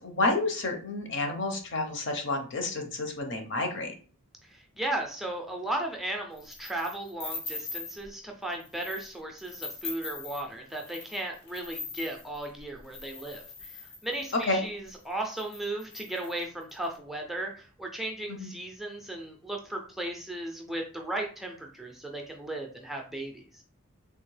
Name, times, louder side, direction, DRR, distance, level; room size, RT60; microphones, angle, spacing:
voice 1, 0.0-3.9 14.5-14.6 18.4-18.5, left 2 dB, 55° left, 4 dB, 0.7 m, -30 dB
voice 2, 4.4-23.6, right 1 dB, ahead, 1 dB, 0.4 m, -36 dB
sound 1, 6.4-8.1 8.5-9.1 9.4-14.4 15.0-15.1 15.3-16.8, left 4 dB, 85° left, 1.2 m, -41 dB
3.5 x 2.8 x 3.2 m, 0.41 s
head